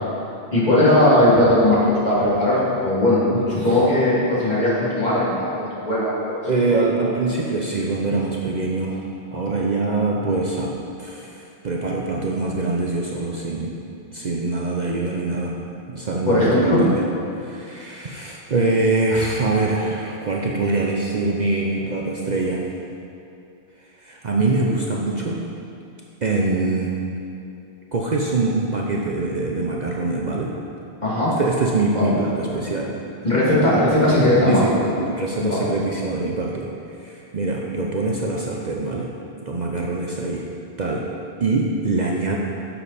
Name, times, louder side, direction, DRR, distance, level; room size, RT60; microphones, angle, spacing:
voice 1, 0.5-3.2 3.5-6.4 16.2-16.8 31.0-31.3 31.8-32.1 33.2-34.6 35.4-35.6, left 1 dB, 40° left, -9 dB, 2.7 m, -18 dB
voice 2, 3.3-3.8 6.4-13.7 14.1-15.5 15.9-17.1 17.4-22.7 24.0-25.4 26.2-26.9 27.9-30.5 31.4-32.9 34.5-36.7 37.0-39.1 39.4-40.4 40.8-41.1 41.4-42.4, right 3 dB, 45° right, -2 dB, 0.7 m, -24 dB
9.9 x 7.2 x 4.2 m, 2.6 s
omnidirectional pair, 1.1 m